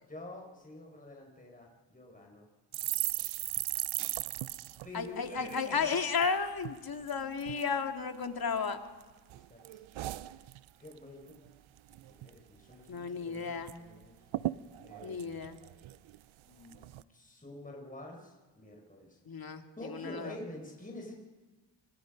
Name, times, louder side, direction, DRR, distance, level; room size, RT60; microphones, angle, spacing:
voice 1, 0.0-2.5 4.8-5.9 9.3-9.8 10.8-11.2 12.1-14.1 14.8-15.3 16.4-19.2 19.8-21.2, left 1 dB, 15° left, 0 dB, 5.3 m, -47 dB
sound 1, 2.7-6.3 6.6-6.8 7.1-7.7 8.2-9.0 9.3-11.0 11.3-11.5 11.8-12.4 12.7-12.8 13.1-13.8 14.0-14.1 14.3-16.2 16.7-17.0, right 15 dB, 85° right, 0.7 m, -38 dB
voice 2, 4.9-8.8 12.9-13.7 15.0-15.6 19.3-20.3, left 5 dB, 50° left, 6 dB, 2.5 m, -33 dB
27.0 x 24.5 x 5.3 m, 1.3 s
cardioid pair, 60°, 46 cm